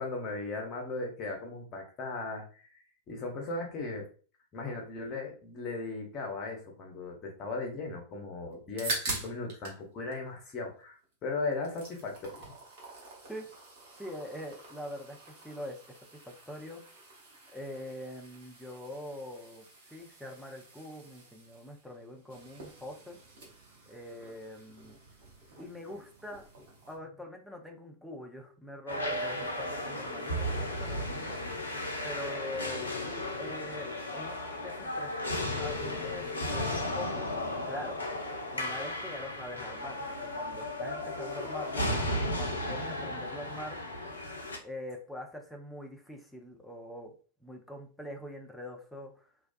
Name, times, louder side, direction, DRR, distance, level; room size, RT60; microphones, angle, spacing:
voice 1, 0.0-4.1 4.5-12.5, left 3 dB, 30° left, 1 dB, 0.8 m, -37 dB
sound 1, 8.5-9.8 10.1-11.1 11.4-27.0, right 2 dB, 50° right, 0.8 m, -45 dB
voice 2, 14.0-15.8 16.1-16.2 16.5-16.8 17.5-19.6 19.9-23.2 23.9-25.0 25.6-26.4 26.9-31.4 32.0-35.2 35.6-37.3 37.7-38.0 38.5-43.8 44.6-47.1 47.4-49.3, left 1 dB, ahead, 1 dB, 0.5 m, -43 dB
sound 2, 28.9-44.6, left 1 dB, 75° left, 0.4 m, -35 dB
2.3 x 2.2 x 2.5 m, 0.39 s
figure-of-eight pair, 90°, 0 cm